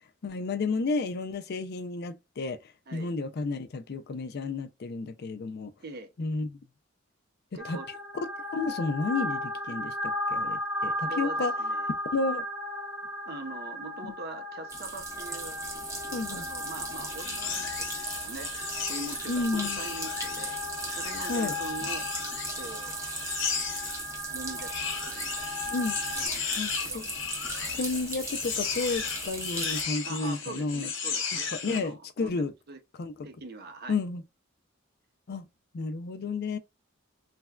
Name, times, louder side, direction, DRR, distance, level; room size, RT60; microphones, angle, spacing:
voice 1, 0.2-5.7 6.2-6.6 7.5-7.8 8.1-11.5 12.1-12.4 14.0-14.1 16.1-16.5 19.3-19.8 21.3-21.5 25.7-26.0 26.6-27.1 27.8-30.9 31.6-32.5 33.0-33.3 33.9-34.2 35.3-35.5 35.7-36.6, left 3 dB, 55° left, 0.4 m, -32 dB
voice 2, 5.8-6.1 7.5-7.9 11.0-11.9 13.3-15.6 16.3-18.5 18.9-20.6 20.9-22.1 22.5-23.0 24.3-25.5 26.1-27.0 30.0-32.3 32.7-32.8 33.2-34.0, right 3 dB, 50° right, 0.6 m, -42 dB
sound 1, 7.6-26.3, left 1 dB, 90° left, 0.7 m, -36 dB
sound 2, 14.7-29.8, right 2 dB, 15° right, 0.7 m, -38 dB
sound 3, 17.1-24.0 24.6-31.9, left 6 dB, 70° left, 0.9 m, -35 dB
3.3 x 2.1 x 2.2 m
head